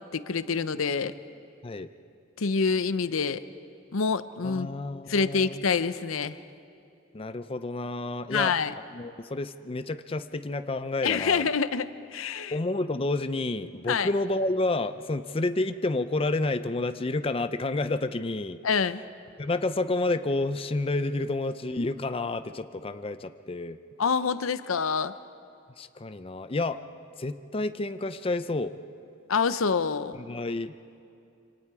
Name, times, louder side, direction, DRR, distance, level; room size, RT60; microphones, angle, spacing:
voice 1, 0.1-1.1 2.4-3.4 3.9-4.7 5.1-6.4 8.3-8.7 11.0-12.6 13.9-14.1 18.6-19.0 24.0-25.1 29.3-30.2, left 5 dB, 85° left, 13 dB, 0.7 m, -26 dB
voice 2, 4.4-5.6 7.1-8.5 8.9-11.5 12.5-18.6 19.4-23.8 25.8-26.8 27.2-28.7 30.1-30.7, left 2 dB, 25° left, 10 dB, 0.5 m, -30 dB
27.0 x 25.5 x 4.8 m, 2.6 s
head